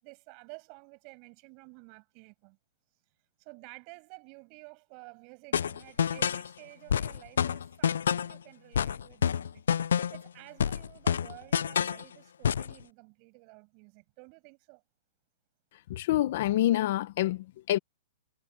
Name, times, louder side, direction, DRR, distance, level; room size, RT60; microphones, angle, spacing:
voice 1, 0.0-2.6 3.4-9.7 10.1-14.8, right 35 dB, 30° right, 6.4 m, -52 dB
sound 1, 5.5-6.5 6.9-8.4 8.7-10.3 10.6-12.0 12.4-12.7, left 8 dB, 85° left, 0.3 m, -28 dB
voice 2, 15.9-17.8, left 14 dB, 45° left, 0.9 m, -27 dB
hypercardioid pair, 165°, 0 cm